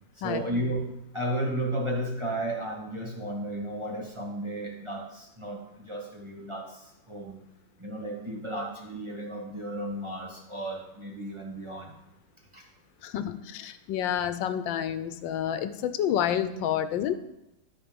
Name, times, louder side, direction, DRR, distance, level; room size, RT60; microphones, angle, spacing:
voice 1, 0.2-6.8 7.1-7.4 7.8-11.9 12.5-12.6, right 1 dB, 15° right, -2 dB, 1.6 m, -33 dB
voice 2, 13.0-17.1, left 10 dB, 90° left, 11 dB, 1.4 m, -29 dB
12.5 x 4.9 x 5.2 m, 0.88 s
omnidirectional pair, 2.0 m